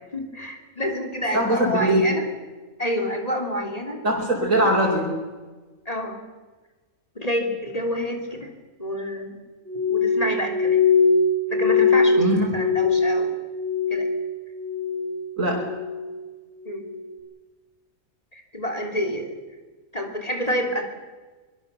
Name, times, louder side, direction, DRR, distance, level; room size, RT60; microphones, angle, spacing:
voice 1, 0.1-2.3 2.8-4.0 5.8-6.2 7.1-8.5 8.8-9.3 9.9-10.8 11.5-13.3 13.9-14.1 16.6-16.8 18.3-19.3 19.9-20.8, equal, 25° left, 4 dB, 3.3 m, -28 dB
voice 2, 1.3-2.1 4.0-5.1 12.2-12.4 15.4-15.6, right 1 dB, 65° right, -4 dB, 4.7 m, -21 dB
Glass, 9.7-14.3 14.5-15.2 15.6-16.1 16.7-17.0, left 4 dB, 55° left, 5.7 m, -21 dB
24.5 x 22.0 x 7.0 m, 1.3 s
omnidirectional pair, 1.5 m